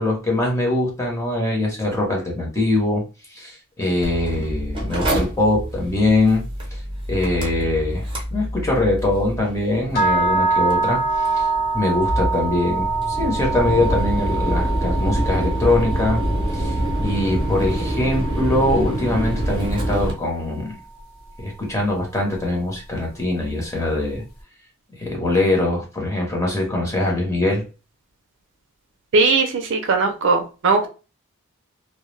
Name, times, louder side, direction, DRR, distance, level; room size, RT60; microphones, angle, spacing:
voice 1, 0.0-3.0 3.3-6.4 6.7-6.8 7.1-8.0 8.3-11.5 11.7-16.2 16.5-20.7 21.4-24.2 25.0-27.6, left 2 dB, 15° left, -1 dB, 0.8 m, -22 dB
Mechanical fan, 4.0-20.1, right 1 dB, 25° right, 0.7 m, -26 dB
sound 1, 9.9-20.0, right 3 dB, 45° left, 0.7 m, -25 dB
voice 2, 29.1-30.9, right 4 dB, 60° right, 5 dB, 0.5 m, -19 dB
2.2 x 2.0 x 3.1 m, 0.32 s
head